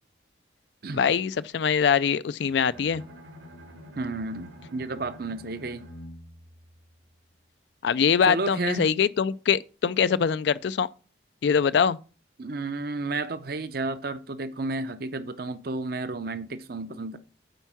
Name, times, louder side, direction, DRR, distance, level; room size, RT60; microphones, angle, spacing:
voice 1, 0.9-3.0 7.8-10.9 11.4-12.0, left 7 dB, 65° left, 0.3 m, -23 dB
Bowed string instrument, 2.4-7.4, equal, 80° right, 2.2 m, -47 dB
voice 2, 4.0-5.9 8.3-8.9 12.4-17.2, right 3 dB, 50° right, 0.7 m, -32 dB
9.1 x 4.5 x 5.7 m
head